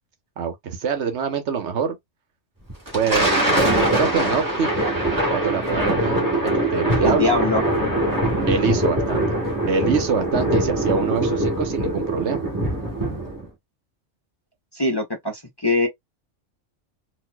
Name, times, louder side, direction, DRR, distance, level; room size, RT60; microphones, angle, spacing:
voice 1, 0.4-2.0 2.9-4.7 5.3-7.3 8.5-9.4 9.7-12.4, right 6 dB, 70° right, 1.1 m, -25 dB
Thunder, 2.7-13.5, right 1 dB, 15° right, 1.2 m, -22 dB
voice 2, 7.0-7.6 14.7-15.9, left 2 dB, 25° left, 0.7 m, -22 dB
4.1 x 2.6 x 2.2 m
omnidirectional pair, 1.2 m